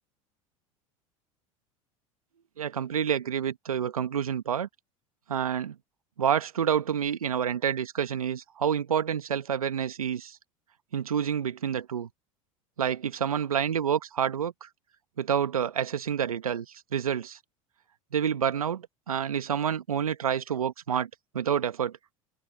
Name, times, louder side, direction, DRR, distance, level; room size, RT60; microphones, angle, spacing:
voice 1, 2.6-4.7 5.3-5.7 6.2-10.4 10.9-12.1 12.8-14.7 15.2-16.7 16.9-17.4 18.1-21.1 21.3-22.0, right 8 dB, 85° right, 1.7 m, -28 dB
open air
hypercardioid pair, 75°, 18 cm